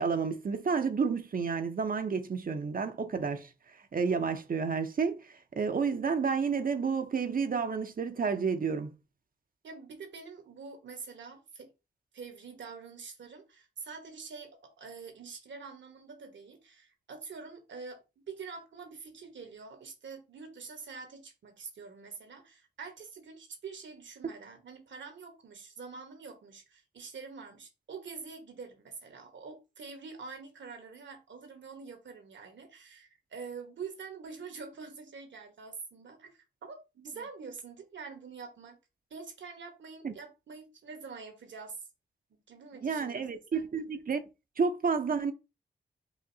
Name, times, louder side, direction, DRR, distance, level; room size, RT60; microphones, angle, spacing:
voice 1, 0.0-3.5 3.9-8.9 40.0-40.1 42.8-44.2 44.6-45.3, right 5 dB, 50° right, 0.6 m, -30 dB
voice 2, 9.6-11.7 12.1-38.8 39.1-41.8 42.5-43.2 43.5-43.7, right 5 dB, 75° right, 1.2 m, -46 dB
4.9 x 2.6 x 2.7 m
cardioid pair, 50°, 19 cm